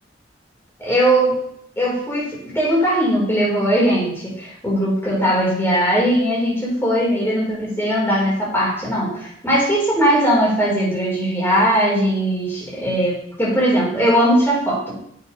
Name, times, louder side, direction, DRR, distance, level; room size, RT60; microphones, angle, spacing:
voice 1, 0.8-1.4 1.8-15.0, equal, 15° left, -6 dB, 4.4 m, -19 dB
10.0 x 8.6 x 3.3 m, 0.70 s
head